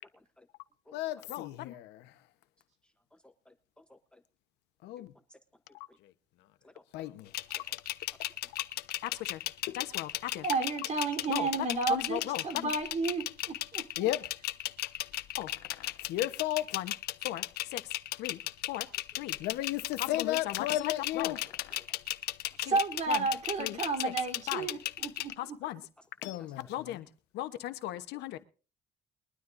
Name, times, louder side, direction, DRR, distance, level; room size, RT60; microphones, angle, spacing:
voice 1, 0.1-0.5 0.9-1.0 3.1-4.2 5.0-5.1 5.3-5.4 6.6-7.1 7.5-7.6 8.4-8.5 21.8-21.9, left 1 dB, 5° left, 0.9 m, -60 dB
voice 2, 0.9-2.2 4.8-5.1 5.7-6.1 6.9-7.3 9.0-9.4 9.7-10.4 11.3-12.7 14.0-14.3 15.4-16.9 17.2-18.4 18.7-18.9 19.2-21.8 22.6-22.8 23.1-23.3 23.6-24.1 24.5-24.7 25.4-25.8 26.2-28.4, left 14 dB, 85° left, 1.1 m, -35 dB
sound 1, 7.3-25.3, left 15 dB, 70° left, 0.7 m, -35 dB
voice 3, 10.4-14.1 22.6-25.3, right 3 dB, 45° right, 3.6 m, -32 dB
22.0 x 12.5 x 2.6 m
cardioid pair, 110°, 17 cm